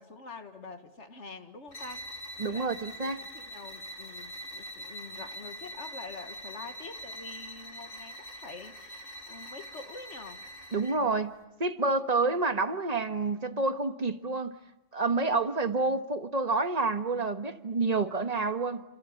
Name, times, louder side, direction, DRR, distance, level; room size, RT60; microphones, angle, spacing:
voice 1, 0.0-2.1 2.4-10.5, left 4 dB, 65° left, 1.9 m, -46 dB
sound 1, 1.7-11.0, equal, 45° left, 2.8 m, -43 dB
voice 2, 2.4-3.2 10.7-11.3 11.6-14.6 14.9-18.8, right 3 dB, 30° right, 1.4 m, -28 dB
28.5 x 27.5 x 7.3 m
omnidirectional pair, 1.3 m